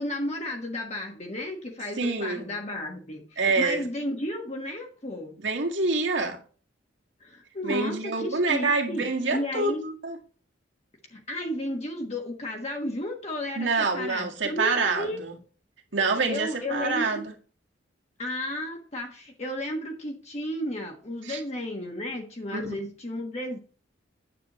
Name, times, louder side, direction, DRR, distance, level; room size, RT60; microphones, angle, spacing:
voice 1, 0.0-5.3 7.2-9.8 11.1-15.2 16.1-17.2 18.2-23.6, left 1 dB, 35° left, 1.4 m, -33 dB
voice 2, 2.0-2.6 3.4-3.9 5.4-6.4 7.6-10.2 13.6-15.4 15.9-17.2 21.2-21.4 22.5-22.7, right 3 dB, 70° right, 1.9 m, -26 dB
9.3 x 8.2 x 3.1 m
head